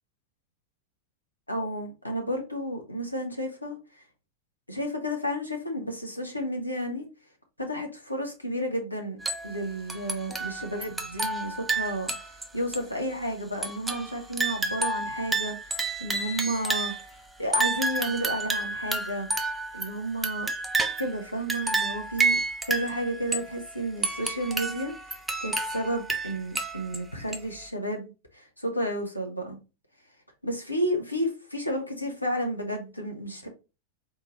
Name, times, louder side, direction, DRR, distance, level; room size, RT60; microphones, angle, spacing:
voice 1, 1.5-4.0 4.7-7.1 7.6-9.2 9.4-16.9 17.4-19.3 19.7-20.5 21.0-22.4 22.7-24.9 25.4-29.6 30.4-33.5, equal, 85° left, 0.9 m, -32 dB
sound 1, 9.2-9.6 9.9-12.4 12.7-12.8 13.6-17.1 17.5-21.2 21.5-23.5 24.0-27.0 27.3-27.4, right 3 dB, 10° right, 0.6 m, -30 dB
4.2 x 3.6 x 3.0 m
figure-of-eight pair, 90°, 0 cm